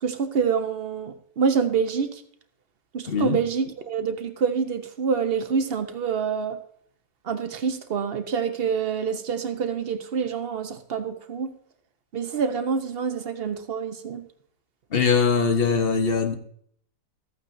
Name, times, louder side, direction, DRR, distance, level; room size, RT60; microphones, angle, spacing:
voice 1, 0.0-2.2 2.9-6.6 7.2-11.5 12.1-14.3, right 6 dB, 45° right, 8 dB, 0.8 m, -26 dB
voice 2, 3.1-3.4 14.9-16.3, left 5 dB, 40° left, 7 dB, 1.1 m, -21 dB
14.0 x 8.7 x 2.6 m, 0.63 s
omnidirectional pair, 1.8 m